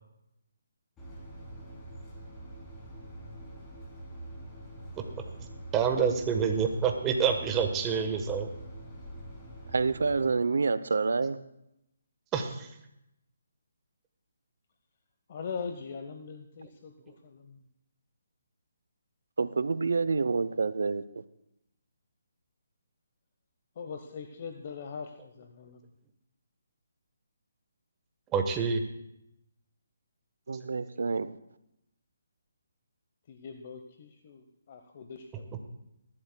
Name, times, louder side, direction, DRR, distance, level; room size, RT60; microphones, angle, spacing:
sound 1, 1.0-10.3, right 1 dB, 15° left, 3.1 m, -45 dB
voice 1, 5.0-5.3 5.7-8.5 12.3-12.7 28.3-28.8, right 6 dB, 15° right, 5 dB, 1.2 m, -27 dB
voice 2, 9.7-11.4 19.4-21.0 30.5-31.3, right 4 dB, 75° right, 14 dB, 0.6 m, -27 dB
voice 3, 15.3-17.6 23.8-25.8 33.3-35.7, left 5 dB, 45° left, 6 dB, 0.9 m, -41 dB
21.0 x 12.0 x 2.3 m, 0.83 s
hypercardioid pair, 155°, 0 cm